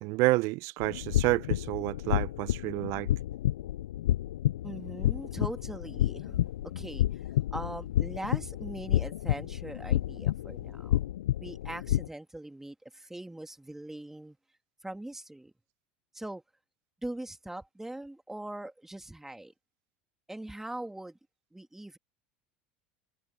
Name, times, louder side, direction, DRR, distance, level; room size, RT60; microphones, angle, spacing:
voice 1, 0.0-3.1, right 22 dB, 60° right, 0.8 m, -29 dB
sound 1, 0.8-12.1, left 13 dB, 80° left, 0.4 m, -30 dB
voice 2, 4.6-7.2 7.5-11.0 11.4-14.4 14.8-15.5 16.1-16.4 17.0-19.5 20.3-21.2 21.5-22.0, right 1 dB, 5° right, 2.2 m, -41 dB
hypercardioid pair, 80°, 6 cm